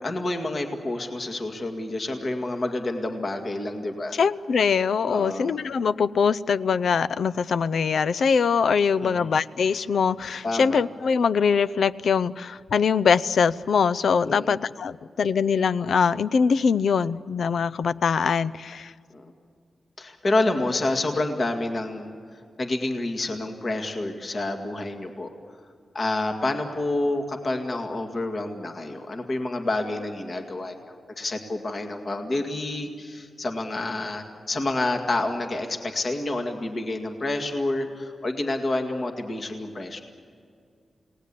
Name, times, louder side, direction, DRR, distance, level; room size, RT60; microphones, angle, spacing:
voice 1, 0.0-4.2 5.1-5.5 9.0-9.3 10.4-10.8 14.2-14.6 19.1-19.3 20.0-22.1 22.6-25.3 25.9-30.8 31.2-40.0, left 2 dB, 40° left, 4 dB, 2.1 m, -28 dB
voice 2, 4.1-18.9, left 6 dB, 65° left, 17 dB, 0.6 m, -23 dB
29.0 x 18.5 x 8.5 m, 2.2 s
wide cardioid pair, 155°, 0 cm